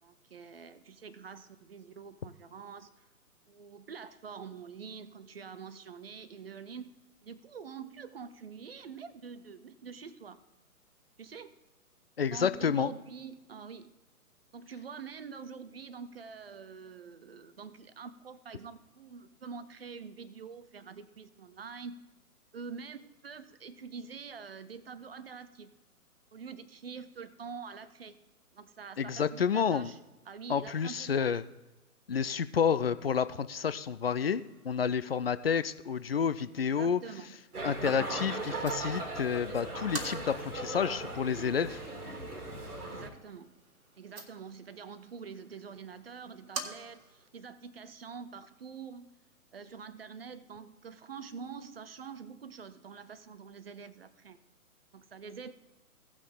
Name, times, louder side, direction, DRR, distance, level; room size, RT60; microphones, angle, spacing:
voice 1, 0.0-3.1 3.5-6.9 7.2-10.4 11.2-11.5 12.3-13.9 14.5-22.0 22.5-25.7 26.3-28.2 28.5-30.0 30.3-31.4 36.6-37.8 42.8-43.6 44.0-49.1 49.5-54.4 54.9-55.5, right 6 dB, 40° right, 14 dB, 0.6 m, -46 dB
voice 2, 12.2-12.9 29.0-29.9 30.5-31.4 32.1-37.0 37.6-41.8, left 7 dB, 45° left, 14 dB, 0.4 m, -30 dB
sound 1, 34.3-47.3, right 3 dB, 65° right, 1.6 m, -49 dB
sound 2, 37.5-43.1, right 2 dB, 80° right, 2.1 m, -38 dB
16.5 x 6.3 x 3.7 m, 1.1 s
figure-of-eight pair, 135°, 45 cm